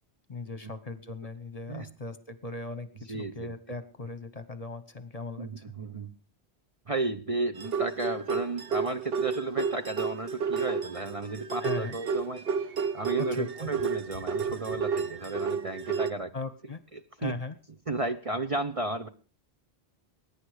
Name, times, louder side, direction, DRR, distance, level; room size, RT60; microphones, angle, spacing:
voice 1, 0.3-5.5 11.6-12.0 13.3-13.7 16.3-16.8 17.2-17.6, left 3 dB, 35° left, 13 dB, 1.0 m, -38 dB
voice 2, 3.1-3.5 5.4-6.1 6.9-12.7 12.9-16.3 16.9-17.4 17.9-19.1, right 2 dB, 35° right, 8 dB, 0.8 m, -33 dB
sound 1, 7.6-16.1, right 6 dB, 60° right, 1.1 m, -31 dB
20.5 x 9.8 x 4.9 m, 0.37 s
omnidirectional pair, 1.1 m